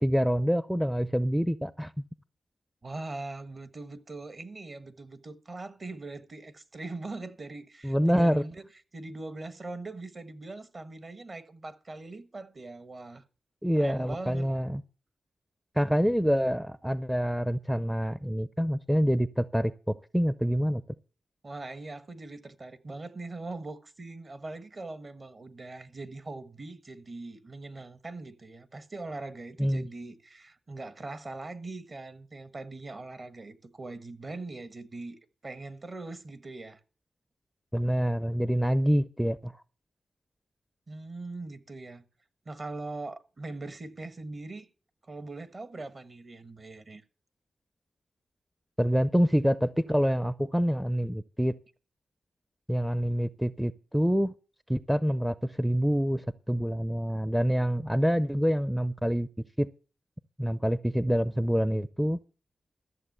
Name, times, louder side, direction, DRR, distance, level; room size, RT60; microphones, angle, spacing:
voice 1, 0.0-1.9 7.8-8.4 13.6-14.8 15.8-20.8 29.6-29.8 37.7-39.5 48.8-51.5 52.7-54.3 54.7-59.3 59.6-59.7 60.4-62.2, equal, 5° right, 0.5 m, -26 dB
voice 2, 2.8-8.6 8.9-13.2 13.7-14.5 21.4-36.8 40.9-42.0 42.4-44.7 45.0-47.0, right 2 dB, 45° right, 1.3 m, -41 dB
13.5 x 7.2 x 6.7 m
cardioid pair, 65°, 0 cm